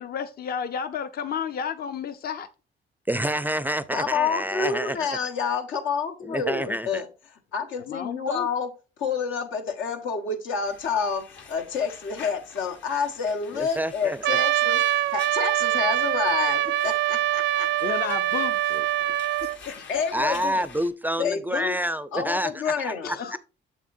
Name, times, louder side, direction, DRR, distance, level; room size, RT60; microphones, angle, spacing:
voice 1, 0.0-2.5 7.9-8.5 17.8-18.8 19.0-20.0 20.3-20.4 23.0-23.4, left 7 dB, 50° left, 0.6 m, -32 dB
voice 2, 3.1-5.3 6.2-7.0 13.5-14.4 18.7-18.8 20.1-23.4, equal, 10° right, 0.4 m, -28 dB
voice 3, 3.9-7.1 7.5-8.7 9.0-17.7 19.6-20.6 21.2-21.7 22.1-23.4, left 6 dB, 85° left, 1.3 m, -29 dB
sound 1, 10.6-20.9, left 5 dB, 70° left, 1.5 m, -48 dB
Trumpet, 14.2-19.6, right 15 dB, 70° right, 0.4 m, -24 dB
7.2 x 7.0 x 2.6 m
cardioid pair, 90°, 20 cm